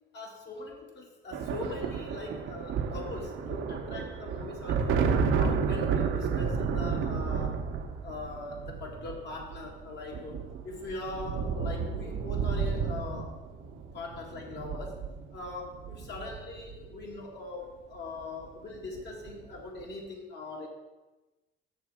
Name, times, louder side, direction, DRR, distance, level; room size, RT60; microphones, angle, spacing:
voice 1, 0.1-5.0 5.3-7.6 8.0-13.4 13.9-15.0 15.3-20.7, left 2 dB, 60° left, 0 dB, 2.0 m, -41 dB
sound 1, 1.3-17.0 18.2-18.5 18.7-19.4, right 6 dB, 85° right, 0.8 m, -32 dB
6.7 x 6.6 x 4.8 m, 1.1 s
cardioid pair, 90°, 20 cm